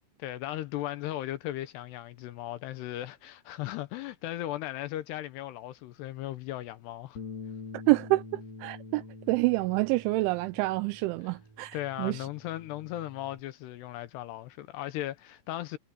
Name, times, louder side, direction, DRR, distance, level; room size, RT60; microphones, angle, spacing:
voice 1, 0.2-7.2 11.7-15.8, left 14 dB, 75° left, 2.6 m, -37 dB
Bass guitar, 7.2-13.4, left 4 dB, 35° left, 4.0 m, -46 dB
voice 2, 7.7-12.3, right 21 dB, 85° right, 3.0 m, -28 dB
omnidirectional pair, 5.5 m